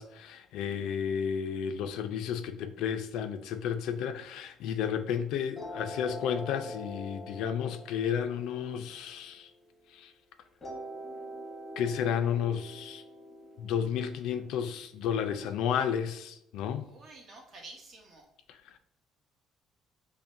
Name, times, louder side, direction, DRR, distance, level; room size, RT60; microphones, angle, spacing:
voice 1, 0.0-9.5 9.9-10.1 11.8-13.0 13.6-16.9 18.5-18.8, left 8 dB, 80° left, 0.4 m, -32 dB
sound 1, 5.6-9.9 10.6-15.6, equal, 15° left, 0.9 m, -44 dB
voice 2, 16.9-18.2, right 2 dB, 40° right, 1.1 m, -50 dB
5.5 x 2.1 x 2.6 m
cardioid pair, 145°, 0 cm